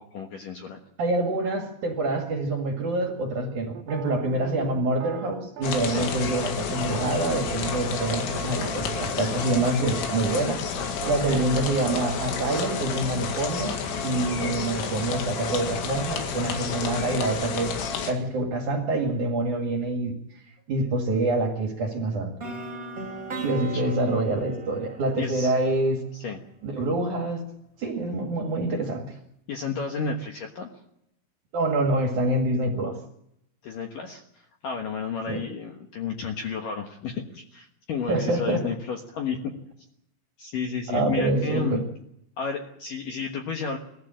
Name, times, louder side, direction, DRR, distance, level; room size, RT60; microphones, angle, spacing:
voice 1, 0.1-0.8 5.9-6.1 11.3-11.4 23.4-23.9 25.2-25.5 26.1-26.4 29.5-30.7 33.6-39.4 40.4-41.8 42.4-43.8, left 5 dB, 65° left, 2 dB, 2.2 m, -32 dB
voice 2, 1.0-10.7 11.0-13.7 14.0-17.8 18.1-20.1 20.7-22.3 23.4-26.0 26.6-27.4 27.8-29.2 31.5-33.0 35.3-35.4 38.1-38.7 40.9-41.8, right 2 dB, 50° right, 3 dB, 2.6 m, -26 dB
sound 1, 3.7-9.1 9.5-9.8 10.3-11.6 11.9-12.0 12.3-12.9, right 8 dB, 75° right, 2.1 m, -39 dB
sound 2, 5.6-18.1, left 6 dB, 85° left, 4.7 m, -30 dB
sound 3, 22.4-26.4, right 2 dB, 25° right, 2.3 m, -38 dB
20.5 x 15.0 x 8.9 m, 0.79 s
omnidirectional pair, 5.7 m